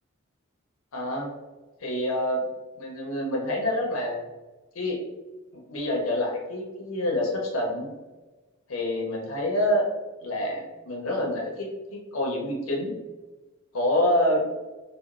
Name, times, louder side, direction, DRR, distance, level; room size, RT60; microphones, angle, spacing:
voice 1, 0.9-1.3 1.8-2.4 2.8-4.2 4.7-5.0 5.7-7.9 8.7-9.9 10.2-12.9 13.7-14.4, left 1 dB, 80° left, -1 dB, 0.6 m, -27 dB
2.9 x 2.1 x 2.3 m, 1.2 s
head